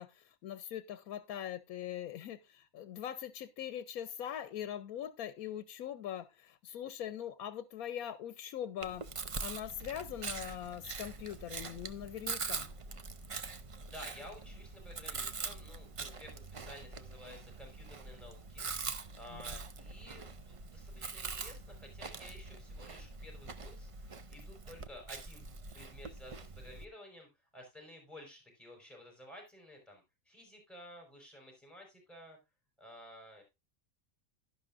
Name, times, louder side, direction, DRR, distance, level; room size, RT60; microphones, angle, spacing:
voice 1, 0.0-9.1 9.4-12.7 19.3-19.4, left 10 dB, 90° left, 1.2 m, -42 dB
Chewing mastication, 8.8-26.8, right 4 dB, 45° right, 0.4 m, -43 dB
voice 2, 13.8-25.5 25.7-32.4 32.8-33.4, left 1 dB, ahead, 5.1 m, -53 dB
11.5 x 11.0 x 2.5 m
omnidirectional pair, 1.5 m